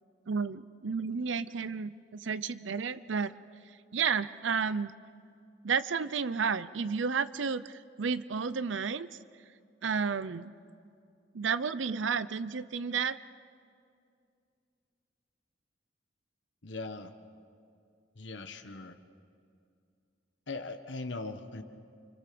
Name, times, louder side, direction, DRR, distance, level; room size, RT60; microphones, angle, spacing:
voice 1, 0.3-3.3 3.9-4.9 5.6-9.1 9.8-10.5 11.3-13.2, right 5 dB, 80° right, 14 dB, 0.6 m, -32 dB
voice 2, 16.6-17.1 18.2-19.0 20.5-21.6, left 3 dB, 70° left, 7 dB, 1.4 m, -40 dB
29.0 x 25.0 x 6.9 m, 2.4 s
head